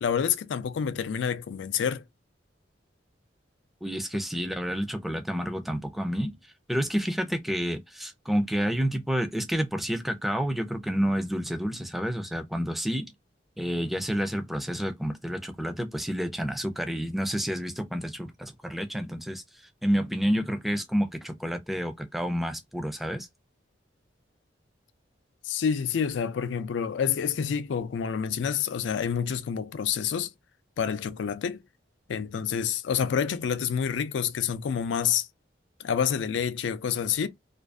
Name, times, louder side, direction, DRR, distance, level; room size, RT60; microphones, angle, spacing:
voice 1, 0.0-2.0 25.4-30.3 30.8-31.6 32.1-35.3 35.8-37.3, left 7 dB, 85° left, 0.4 m, -28 dB
voice 2, 3.8-13.1 13.6-19.4 19.8-23.3, equal, ahead, 0.3 m, -29 dB
2.5 x 2.3 x 2.2 m
head